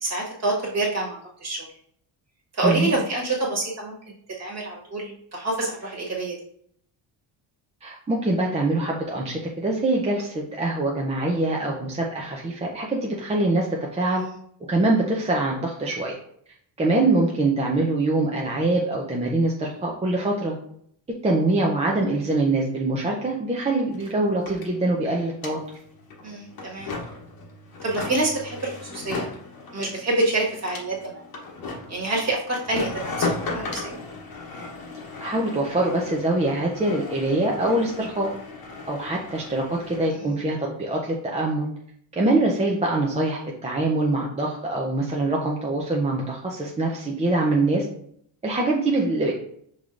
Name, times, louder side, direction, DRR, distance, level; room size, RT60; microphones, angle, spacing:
voice 1, 0.0-1.7 2.5-3.9 4.4-6.3 14.1-14.3 26.2-26.9 27.8-29.3 29.7-31.2 31.9-34.0 40.1-40.3, right 2 dB, 35° right, -2 dB, 1.4 m, -27 dB
voice 2, 2.6-2.9 7.8-13.7 13.9-14.2 14.7-16.2 16.8-20.6 21.2-25.6 35.2-38.3 38.9-41.7 42.2-47.8 48.4-49.3, right 2 dB, 15° right, -2 dB, 0.4 m, -24 dB
sound 1, 23.3-23.4 23.5-40.2, left 3 dB, 50° left, 1.0 m, -36 dB
5.4 x 3.2 x 2.5 m, 0.66 s
cardioid pair, 135°, 45 cm